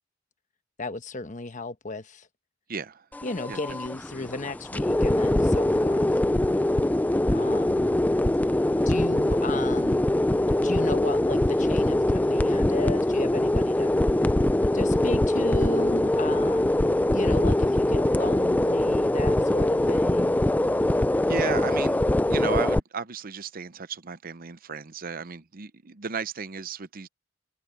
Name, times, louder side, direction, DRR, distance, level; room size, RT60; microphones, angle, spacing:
voice 1, 0.8-2.3 3.2-6.0 7.3-7.9 8.9-10.0 10.5-13.9 14.7-20.3 21.5-21.8, left 3 dB, 40° left, 1.1 m, -34 dB
voice 2, 2.7-3.1 3.5-3.6 21.3-22.0 22.3-27.1, right 5 dB, 45° right, 0.7 m, -34 dB
sound 1, 3.1-22.8, left 1 dB, 10° left, 0.3 m, -23 dB
head